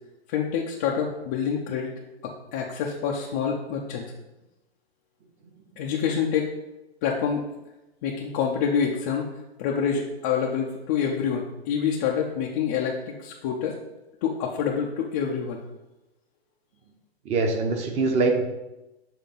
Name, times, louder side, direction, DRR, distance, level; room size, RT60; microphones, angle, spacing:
voice 1, 0.3-1.9 2.2-4.0 5.8-6.5 7.0-7.5 8.0-9.3 9.6-13.8 14.2-15.6, left 7 dB, 20° left, -2 dB, 0.3 m, -27 dB
voice 2, 17.2-18.5, right 3 dB, 20° right, 4 dB, 0.7 m, -23 dB
7.2 x 3.4 x 5.4 m, 0.99 s
figure-of-eight pair, 120°, 32 cm